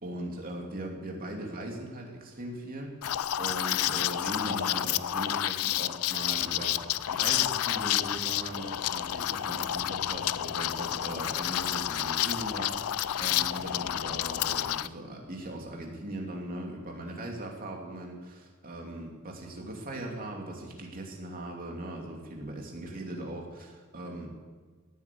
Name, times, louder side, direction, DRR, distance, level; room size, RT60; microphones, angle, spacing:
voice 1, 0.0-24.3, right 1 dB, 40° right, 0 dB, 2.8 m, -39 dB
Liquid, 3.0-14.9, left 12 dB, 75° left, 0.4 m, -30 dB
sound 1, 6.1-14.7, equal, 55° left, 2.4 m, -54 dB
17.0 x 8.3 x 8.6 m, 1.4 s
head